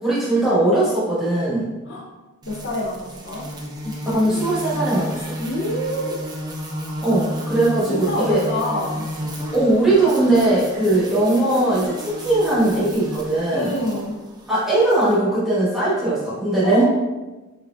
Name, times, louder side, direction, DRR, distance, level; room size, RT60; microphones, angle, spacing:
voice 1, 0.0-1.7 4.1-5.4 7.0-8.4 9.5-13.7 14.5-16.8, right 2 dB, ahead, -10 dB, 1.2 m, -19 dB
voice 2, 2.4-3.4 3.8-4.4 5.4-6.2 7.9-9.1 13.5-14.2 16.6-16.8, left 1 dB, 55° left, -4 dB, 0.7 m, -27 dB
sound 1, 2.4-15.2, equal, 20° right, 0.4 m, -33 dB
4.6 x 2.7 x 2.3 m, 1.1 s
head